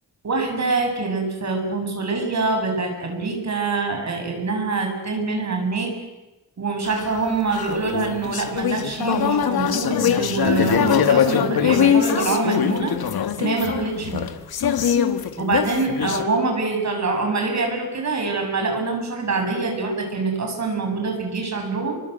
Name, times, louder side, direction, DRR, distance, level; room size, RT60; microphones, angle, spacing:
voice 1, 0.2-5.9 6.6-12.9 13.4-14.2 15.4-22.0, right 3 dB, 50° right, 3 dB, 7.4 m, -25 dB
sound 1, 6.9-16.2, left 8 dB, 85° left, 1.9 m, -22 dB
30.0 x 24.0 x 8.1 m, 1.0 s
wide cardioid pair, 170°, 36 cm